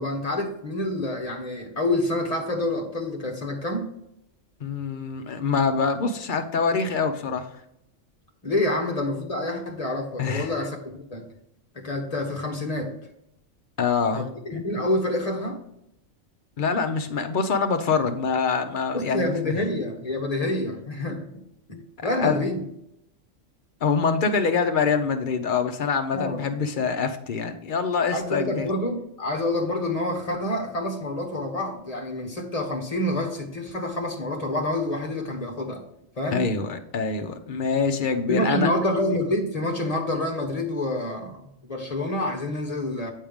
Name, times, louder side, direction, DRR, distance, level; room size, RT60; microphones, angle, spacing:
voice 1, 0.0-3.9 8.4-11.3 11.7-12.9 14.1-15.6 18.9-21.4 21.7-22.6 26.1-26.5 28.1-35.8 36.2-36.5 38.3-43.1, left 1 dB, 30° left, 1 dB, 1.3 m, -27 dB
voice 2, 4.6-7.5 10.2-10.5 13.8-14.3 16.6-19.6 22.0-22.4 23.8-28.7 36.3-38.7, left 5 dB, 45° left, 7 dB, 0.7 m, -25 dB
7.4 x 5.5 x 3.5 m, 0.79 s
omnidirectional pair, 1.4 m